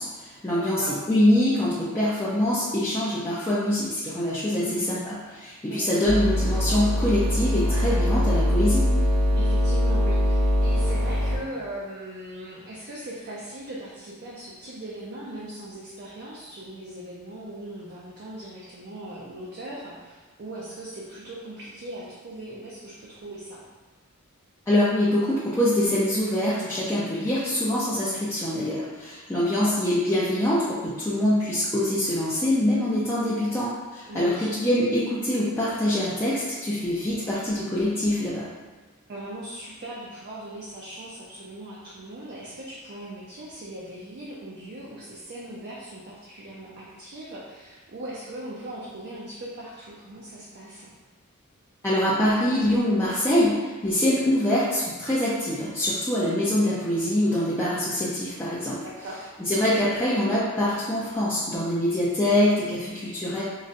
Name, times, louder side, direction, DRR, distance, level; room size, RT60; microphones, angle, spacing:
voice 1, 0.0-8.9 24.7-38.5 51.8-58.8 59.4-63.4, left 1 dB, 10° left, -10 dB, 0.4 m, -24 dB
voice 2, 0.5-1.0 4.5-4.9 5.7-6.0 9.3-23.6 29.3-29.7 34.0-34.5 39.1-50.9 58.8-59.3, right 1 dB, 50° right, -6 dB, 0.5 m, -39 dB
sound 1, 6.0-11.4, left 1 dB, 75° right, 1.1 m, -22 dB
3.9 x 2.1 x 2.5 m, 1.3 s
head